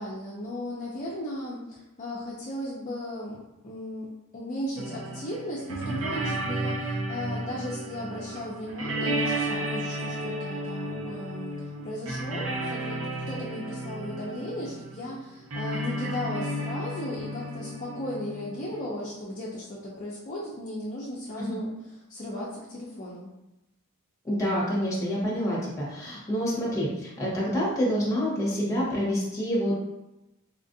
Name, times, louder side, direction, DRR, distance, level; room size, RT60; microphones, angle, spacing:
voice 1, 0.0-3.4 3.6-4.1 4.3-13.0 13.3-21.7 22.1-23.3, left 1 dB, 35° left, -6 dB, 0.5 m, -36 dB
sound 1, 4.8-18.9, right 1 dB, 65° right, 0.6 m, -33 dB
voice 2, 24.2-29.7, equal, 15° left, -5 dB, 1.1 m, -27 dB
4.3 x 2.5 x 2.6 m, 0.95 s
head